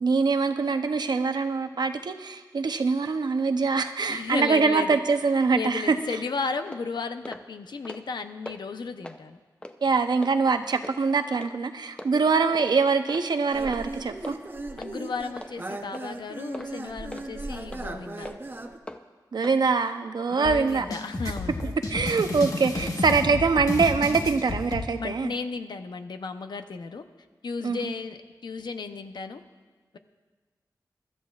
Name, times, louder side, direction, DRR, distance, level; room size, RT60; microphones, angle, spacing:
voice 1, 0.0-6.0 9.8-14.4 19.3-20.8 21.6-25.3 27.6-27.9, right 4 dB, 70° right, 8 dB, 0.7 m, -24 dB
voice 2, 4.1-5.0 5.5-9.4 14.8-18.3 20.3-21.6 25.0-27.1 27.4-29.4, left 4 dB, 80° left, 8 dB, 0.7 m, -34 dB
sound 1, 6.1-6.2 6.7-6.8 7.3-7.4 7.7-8.1 8.5-8.6 9.0-9.2 9.6-9.8 10.2-10.3 10.8-11.0 11.4-11.5 12.0-12.1 12.5-12.7 13.1-13.3 13.7-13.8 14.2-14.4 14.8-14.9 15.4-15.5 15.9-16.1 16.5-16.7 17.1-17.3 17.7-17.8 18.2-18.4 18.9-19.0 19.4-19.6, left 1 dB, 15° left, 0.6 m, -40 dB
sound 2, 13.5-18.8, right 2 dB, 30° right, 0.7 m, -37 dB
sound 3, 20.4-24.8, left 2 dB, 50° left, 1.3 m, -31 dB
23.5 x 12.5 x 2.4 m, 1.3 s
wide cardioid pair, 115°, 7 cm